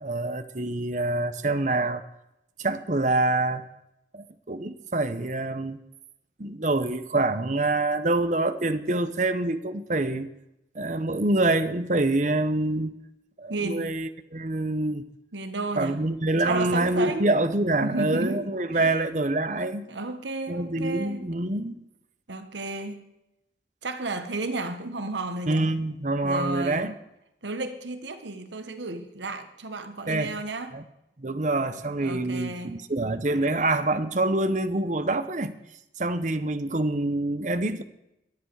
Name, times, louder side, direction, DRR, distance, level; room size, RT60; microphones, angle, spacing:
voice 1, 0.0-2.0 2.6-3.6 4.1-5.8 6.4-10.3 10.7-12.9 13.4-15.0 15.7-19.9 20.5-21.8 25.5-26.9 30.1-30.3 30.7-30.8 31.2-35.6 36.0-37.8, right 2 dB, 45° right, 0.9 m, -26 dB
voice 2, 13.5-14.0 15.3-16.0 16.4-17.4 17.8-19.0 19.9-21.3 22.3-23.0 23.8-25.8 26.2-26.9 27.4-30.8 32.0-32.9, right 2 dB, 90° right, 1.4 m, -33 dB
22.5 x 8.2 x 4.8 m
head